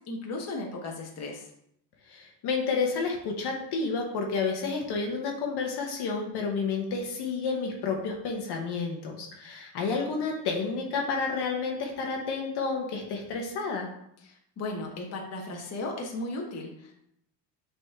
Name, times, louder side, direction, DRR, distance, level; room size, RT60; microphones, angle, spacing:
voice 1, 0.1-1.5 14.2-16.9, left 2 dB, 35° left, 0 dB, 1.2 m, -36 dB
voice 2, 2.1-13.9, left 4 dB, 60° left, 1 dB, 1.3 m, -30 dB
6.1 x 4.1 x 3.7 m, 0.74 s
cardioid pair, 125°, 44 cm